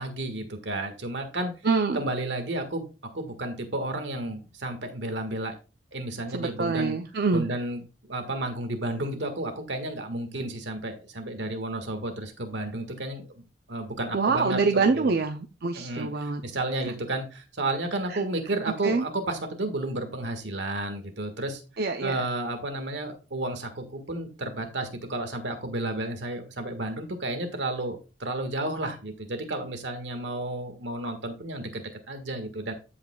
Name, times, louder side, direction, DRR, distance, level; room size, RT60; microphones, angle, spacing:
voice 1, 0.0-1.5 1.9-2.8 3.1-5.5 5.9-7.0 7.3-13.4 13.7-15.1 15.7-21.6 22.0-32.7, right 2 dB, 80° right, 7 dB, 1.6 m, -32 dB
voice 2, 1.6-2.0 6.3-7.5 14.1-16.4 18.1-18.2 18.8-19.1 21.8-22.2, right 4 dB, 60° right, 6 dB, 0.5 m, -25 dB
14.5 x 4.9 x 2.3 m, 0.32 s
head